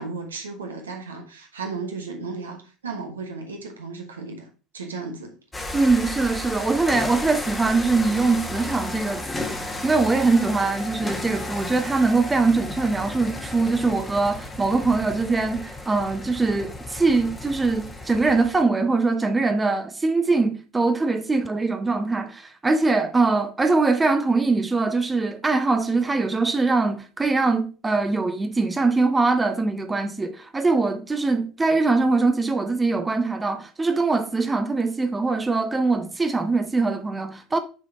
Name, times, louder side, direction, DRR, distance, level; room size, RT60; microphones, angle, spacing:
voice 1, 0.0-4.5 4.7-5.3, right 4 dB, 80° right, 1.2 m, -34 dB
sound 1, 5.5-18.6, left 2 dB, 15° left, 1.2 m, -34 dB
voice 2, 5.7-37.6, right 3 dB, 15° right, 0.6 m, -22 dB
6.1 x 3.9 x 4.3 m
figure-of-eight pair, 70°, 0 cm